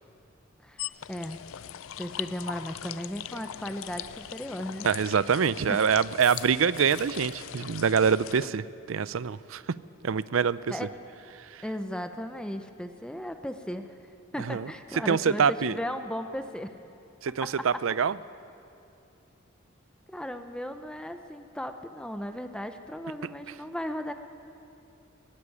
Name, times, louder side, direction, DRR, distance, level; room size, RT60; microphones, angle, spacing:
voice 1, 0.6-1.4 2.0-4.9 5.7-5.8 10.7-10.9 11.6-14.0 14.3-16.8 17.4-17.8 20.1-24.1, equal, 5° left, 7 dB, 0.7 m, -36 dB
sound 1, 0.8-8.5, left 10 dB, 85° left, 0.5 m, -40 dB
voice 2, 4.8-9.8 10.0-10.6 11.5-11.6 14.5-14.7 15.1-15.7 17.2-18.1, right 6 dB, 85° right, 17 dB, 0.5 m, -25 dB
sound 2, 6.2-7.4, right 5 dB, 30° right, 4.1 m, -46 dB
19.0 x 15.0 x 9.8 m, 2.6 s
head